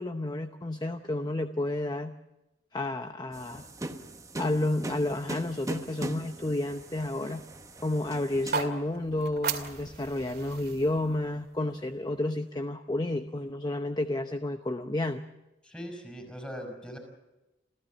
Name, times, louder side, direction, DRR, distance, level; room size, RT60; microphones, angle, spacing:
voice 1, 0.0-2.2 2.7-3.7 4.4-7.4 7.8-15.2, left 1 dB, 25° left, 8 dB, 0.8 m, -31 dB
sound 1, 3.3-8.6, right 1 dB, 20° right, 1.0 m, -39 dB
sound 2, 8.3-12.4, right 6 dB, 60° right, 2.3 m, -37 dB
voice 2, 15.6-17.0, equal, 5° left, 3 dB, 5.8 m, -40 dB
28.0 x 15.5 x 7.4 m, 1.0 s
head